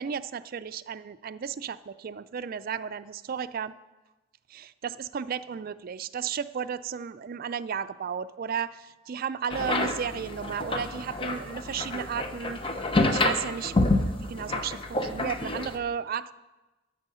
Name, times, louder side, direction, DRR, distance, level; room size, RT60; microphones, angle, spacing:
voice 1, 0.0-3.7 4.5-12.6 13.1-16.3, right 7 dB, 50° right, 14 dB, 0.4 m, -34 dB
sound 1, 9.5-15.8, left 2 dB, 30° left, 0.8 m, -28 dB
12.5 x 6.3 x 5.6 m, 1.1 s
head